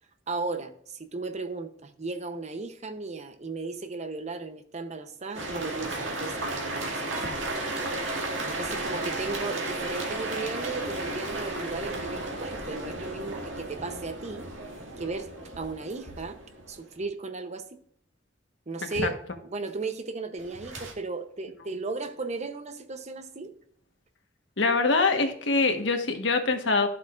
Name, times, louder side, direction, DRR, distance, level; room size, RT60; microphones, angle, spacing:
voice 1, 0.3-7.6 8.5-14.5 15.0-16.4 16.7-17.6 18.7-23.5, right 3 dB, 40° right, 0.7 m, -36 dB
sound 1, 5.3-16.9 20.4-20.9, right 2 dB, 90° right, 2.0 m, -34 dB
voice 2, 24.6-26.9, left 3 dB, 70° left, 1.3 m, -24 dB
12.0 x 7.7 x 2.5 m
head